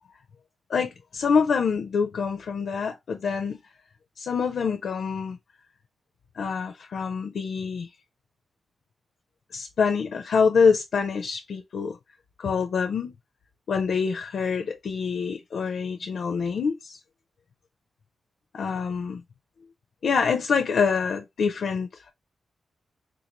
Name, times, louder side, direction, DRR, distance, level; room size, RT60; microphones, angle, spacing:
voice 1, 0.7-3.6 4.2-5.4 6.4-7.9 9.5-12.0 12.4-13.1 13.7-17.0 18.5-19.2 20.0-21.9, left 5 dB, 70° left, 0.6 m, -25 dB
3.8 x 2.6 x 2.9 m
supercardioid pair, 45°, 0 cm